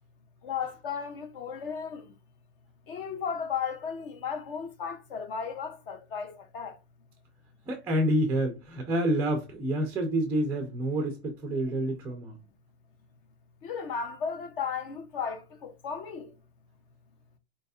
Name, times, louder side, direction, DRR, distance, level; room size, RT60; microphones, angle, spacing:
voice 1, 0.4-2.0 2.9-6.8 13.6-16.3, left 6 dB, 50° left, 0.9 m, -35 dB
voice 2, 7.7-12.4, right 1 dB, 5° right, 0.3 m, -28 dB
4.0 x 3.3 x 2.6 m
hypercardioid pair, 140°, 34 cm